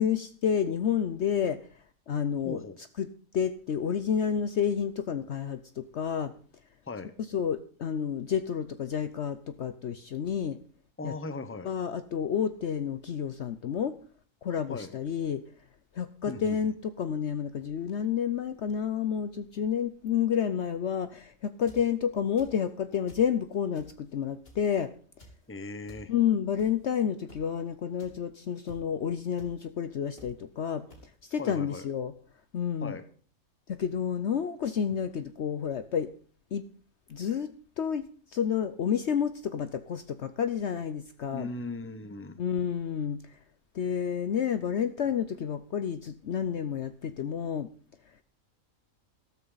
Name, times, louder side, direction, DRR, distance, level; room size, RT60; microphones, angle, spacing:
voice 1, 0.0-1.6 2.1-2.6 3.0-3.1 3.3-6.3 7.2-10.6 11.0-11.1 11.6-14.0 14.4-15.4 15.9-24.9 26.1-30.8 31.2-32.1 32.5-33.0 33.7-36.1 36.5-36.7 37.1-38.1 38.3-41.5 42.4-43.2 43.7-47.7, left 8 dB, 60° left, 11 dB, 0.9 m, -30 dB
voice 2, 2.4-2.8 6.9-7.1 11.0-11.7 14.7-14.9 16.3-16.7 25.5-26.1 31.4-31.8 32.8-33.0 41.3-42.4, left 3 dB, 10° left, 11 dB, 0.9 m, -38 dB
sound 1, 21.5-21.9 22.4-22.7 23.1-23.3 23.7-24.1 24.4-24.7 25.2-25.4 25.9-26.0 26.6-26.8 27.3-27.4 28.0-28.1 28.7-28.8 29.4-29.5 30.2-30.3 30.9-31.0, equal, 40° left, 3.3 m, -51 dB
13.5 x 13.0 x 4.0 m, 0.44 s
omnidirectional pair, 1.5 m